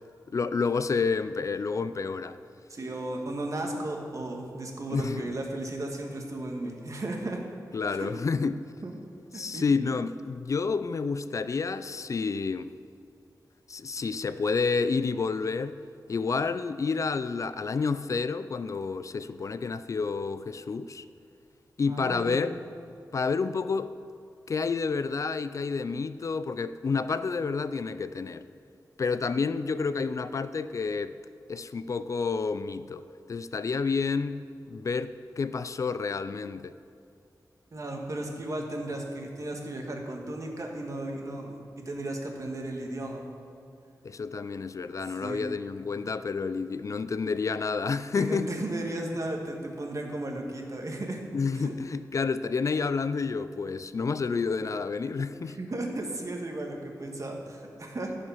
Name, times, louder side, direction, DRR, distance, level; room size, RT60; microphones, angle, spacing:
voice 1, 0.3-2.4 4.9-5.3 7.7-8.7 9.3-12.7 13.7-15.8 16.1-21.0 21.8-22.6 23.1-23.9 24.5-28.4 29.0-31.1 31.5-36.8 44.0-48.5 51.3-55.6, left 4 dB, 50° left, 0.3 m, -29 dB
voice 2, 2.7-7.4 7.9-8.0 8.8-8.9 9.3-9.6 21.8-22.4 37.7-43.2 45.2-45.4 48.2-51.2 51.5-51.7 55.5-58.1, right 1 dB, 50° right, 1.5 m, -35 dB
15.0 x 5.0 x 5.6 m
wide cardioid pair, 70°, 7 cm